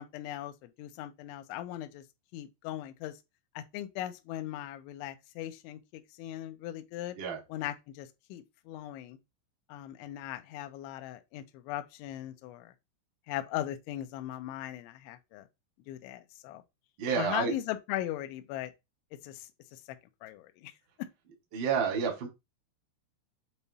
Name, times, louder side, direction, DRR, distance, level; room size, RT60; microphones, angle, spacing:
voice 1, 0.0-2.0 2.3-3.2 3.6-7.2 7.5-9.2 9.7-12.7 13.3-15.5 15.9-16.6 17.2-18.7 19.2-19.8 20.2-20.7, left 13 dB, 80° left, 2.9 m, -39 dB
voice 2, 17.0-17.5 21.5-22.3, right 6 dB, 50° right, 1.3 m, -29 dB
8.0 x 3.5 x 4.1 m
omnidirectional pair, 5.9 m